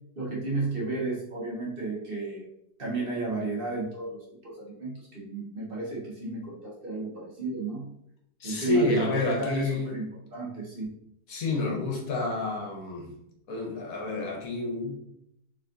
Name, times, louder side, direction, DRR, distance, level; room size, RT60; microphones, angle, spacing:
voice 1, 0.2-2.4 2.8-7.9 8.4-10.0 10.3-10.9, right 3 dB, 40° right, -4 dB, 1.3 m, -33 dB
voice 2, 8.4-9.9 11.3-13.1 13.5-14.9, left 2 dB, 65° left, 0 dB, 1.3 m, -29 dB
4.1 x 3.7 x 2.6 m, 0.76 s
omnidirectional pair, 1.7 m